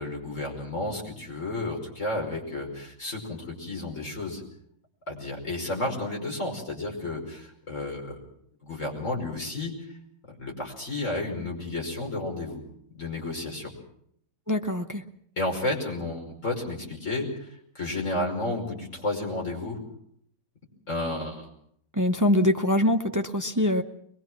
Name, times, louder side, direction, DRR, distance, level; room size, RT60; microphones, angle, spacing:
voice 1, 0.0-4.4 5.1-8.2 8.6-9.7 10.4-12.6 12.9-13.7 15.4-17.5 17.8-19.8 20.9-21.5, left 2 dB, 45° left, 0 dB, 5.7 m, -32 dB
voice 2, 14.5-15.0 22.0-23.8, left 1 dB, 20° right, 6 dB, 0.4 m, -23 dB
23.5 x 21.5 x 6.1 m, 0.69 s
omnidirectional pair, 1.9 m